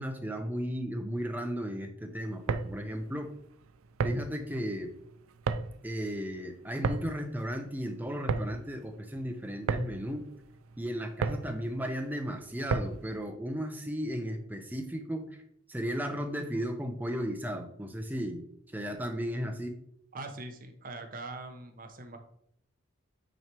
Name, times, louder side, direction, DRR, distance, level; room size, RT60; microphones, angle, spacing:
voice 1, 0.0-3.3 4.0-4.9 5.8-10.3 10.8-15.3 15.7-18.4 18.7-19.8, equal, 10° right, 5 dB, 0.7 m, -35 dB
sound 1, 2.3-13.1, right 4 dB, 80° right, 0.4 m, -35 dB
voice 2, 20.1-22.2, right 2 dB, 40° right, 6 dB, 0.8 m, -42 dB
8.9 x 3.2 x 4.5 m, 0.71 s
head